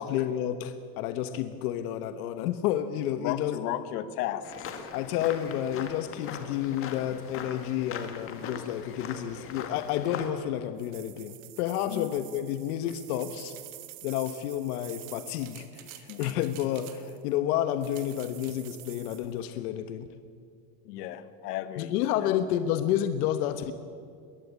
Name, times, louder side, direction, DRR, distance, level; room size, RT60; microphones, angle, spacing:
voice 1, 0.0-3.6 4.9-13.5 14.0-20.1 21.8-23.7, left 11 dB, 70° left, 9 dB, 1.3 m, -30 dB
voice 2, 3.2-4.5 11.9-12.1 16.1-16.3 20.8-21.9 22.2-22.4, left 12 dB, 90° left, 12 dB, 1.6 m, -34 dB
sound 1, 4.4-10.3, left 6 dB, 30° left, 2.0 m, -40 dB
sound 2, 10.8-17.3 17.8-19.3, right 17 dB, 50° right, 1.6 m, -48 dB
22.0 x 17.0 x 8.5 m, 2.3 s
cardioid pair, 170°, 46 cm